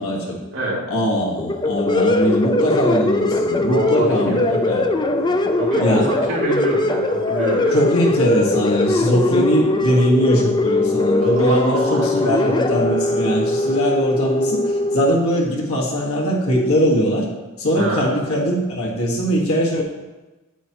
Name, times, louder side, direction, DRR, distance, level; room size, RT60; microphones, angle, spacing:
voice 1, 0.0-0.4 0.9-4.9 5.8-6.1 7.7-17.3 17.6-19.8, equal, 75° left, -2 dB, 1.8 m, -20 dB
sound 1, 1.4-15.1, left 2 dB, 20° left, 0.4 m, -20 dB
voice 2, 3.6-4.4 5.2-7.8 11.2-12.5 17.8-18.2, right 1 dB, 65° right, -5 dB, 2.7 m, -26 dB
8.7 x 8.3 x 3.0 m, 1.1 s
head